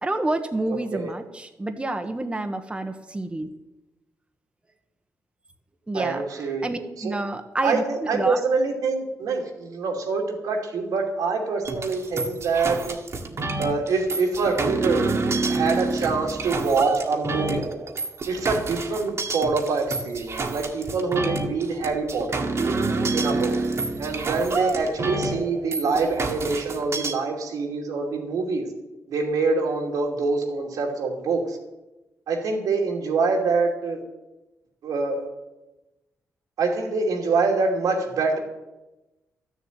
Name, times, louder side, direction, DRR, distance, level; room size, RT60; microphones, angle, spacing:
voice 1, 0.0-3.5 5.9-8.4, right 2 dB, 20° right, 6 dB, 1.1 m, -29 dB
voice 2, 0.7-1.1 5.9-6.6 7.0-7.2 7.6-13.0 13.6-15.1 15.5-17.7 18.3-22.4 23.1-23.6 24.0-28.7 29.1-31.6 32.3-34.0 34.8-35.2 36.6-38.4, right 4 dB, 90° right, 1 dB, 2.7 m, -25 dB
sound 1, 11.6-27.1, right 3 dB, 50° right, 1.7 m, -28 dB
12.5 x 7.1 x 9.3 m, 1.0 s
cardioid pair, 85°, 6 cm